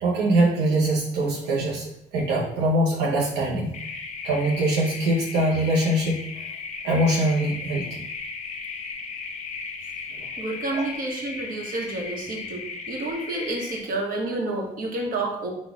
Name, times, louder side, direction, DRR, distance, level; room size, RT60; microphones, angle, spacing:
voice 1, 0.0-3.7 4.2-6.2 6.8-8.0 10.7-10.8, right 1 dB, 80° right, -4 dB, 0.8 m, -23 dB
sound 1, 3.7-13.8, left 4 dB, 45° left, 0.6 m, -36 dB
voice 2, 10.4-15.5, right 2 dB, 55° right, 0 dB, 1.1 m, -29 dB
3.9 x 2.4 x 4.6 m, 0.77 s
cardioid pair, 110°, 17 cm